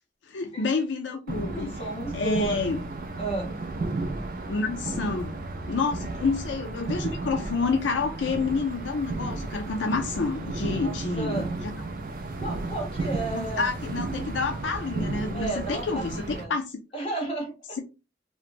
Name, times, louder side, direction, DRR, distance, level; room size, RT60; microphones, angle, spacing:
voice 1, 0.3-1.8 2.1-2.8 4.5-5.3 5.7-11.4 13.3-16.8, left 4 dB, 80° left, 0.4 m, -28 dB
sound 1, 1.3-16.4, right 2 dB, 50° right, 0.4 m, -33 dB
voice 2, 1.5-2.6 3.2-3.5 10.8-11.5 12.4-13.7 15.3-16.5 16.9-17.8, right 2 dB, 30° left, 1.0 m, -33 dB
2.8 x 2.1 x 2.5 m
head